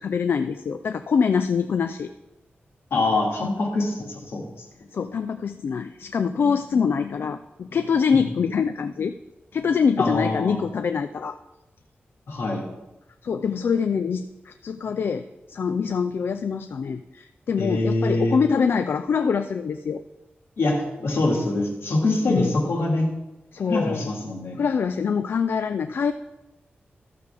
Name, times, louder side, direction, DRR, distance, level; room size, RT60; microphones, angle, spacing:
voice 1, 0.0-2.1 4.9-9.1 9.5-11.4 13.2-15.2 15.5-20.0 22.3-22.5 23.5-24.1 24.6-26.1, left 6 dB, 65° left, 9 dB, 0.3 m, -24 dB
voice 2, 2.9-4.5 10.0-10.6 12.3-12.6 17.6-18.4 20.6-23.1 23.7-24.6, left 2 dB, 80° left, -1 dB, 2.0 m, -24 dB
13.0 x 6.7 x 3.4 m, 0.99 s
wide cardioid pair, 135°, 4 cm